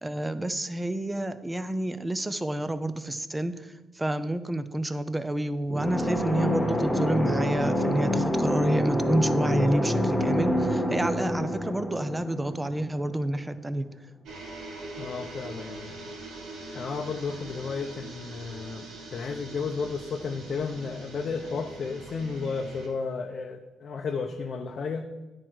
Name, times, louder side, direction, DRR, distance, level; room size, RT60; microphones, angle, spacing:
voice 1, 0.0-13.9, right 1 dB, 15° right, 12 dB, 0.6 m, -29 dB
sound 1, 5.7-13.4, equal, 5° left, 1.1 m, -27 dB
sound 2, 14.2-22.9, right 2 dB, 90° right, 2.7 m, -42 dB
voice 2, 15.0-16.0 16.7-18.8 19.1-25.0, left 5 dB, 55° left, 3 dB, 0.7 m, -33 dB
10.0 x 4.5 x 6.2 m, 1.2 s
cardioid pair, 90°, 0 cm